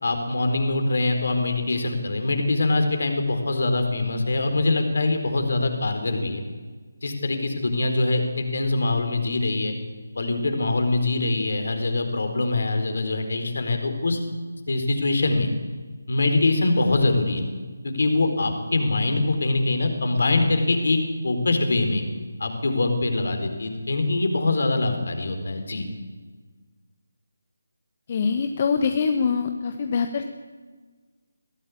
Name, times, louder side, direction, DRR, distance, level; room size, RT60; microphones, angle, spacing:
voice 1, 0.0-6.4 7.0-9.7 10.2-14.2 14.7-15.5 16.1-17.4 17.8-21.0 21.2-22.0 22.4-25.9, left 2 dB, 60° left, 6 dB, 4.3 m, -23 dB
voice 2, 28.1-30.2, left 5 dB, 35° left, 6 dB, 1.4 m, -24 dB
22.0 x 16.0 x 8.6 m, 1.4 s
figure-of-eight pair, 155°, 0 cm